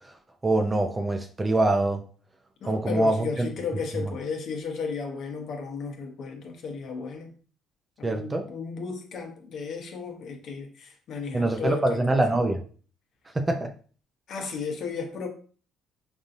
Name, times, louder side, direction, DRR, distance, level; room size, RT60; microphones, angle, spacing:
voice 1, 0.4-2.0 2.6-3.5 4.0-4.1 8.0-8.5 11.3-12.6 13.3-13.7, right 2 dB, 20° right, 0.5 m, -24 dB
voice 2, 2.6-7.3 8.0-12.2 14.3-15.3, left 5 dB, 60° left, 1.0 m, -34 dB
5.3 x 2.6 x 2.6 m
supercardioid pair, 80°, 0 cm